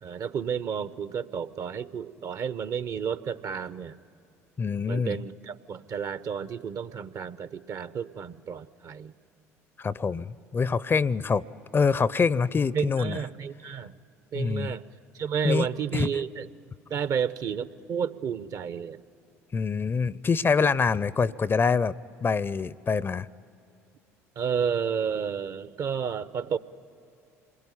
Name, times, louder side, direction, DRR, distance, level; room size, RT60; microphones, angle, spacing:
voice 1, 0.0-4.0 4.9-9.1 12.7-13.9 14.3-14.8 15.2-16.5 16.9-19.0 24.4-26.6, right 7 dB, 50° right, 15 dB, 0.8 m, -31 dB
voice 2, 4.6-5.2 9.8-11.4 11.7-13.2 14.3-14.8 15.4-15.7 15.9-16.1 19.5-21.9 22.2-23.3, left 5 dB, 30° left, 21 dB, 0.6 m, -25 dB
27.0 x 22.0 x 9.9 m, 2.6 s
hypercardioid pair, 60°, 8 cm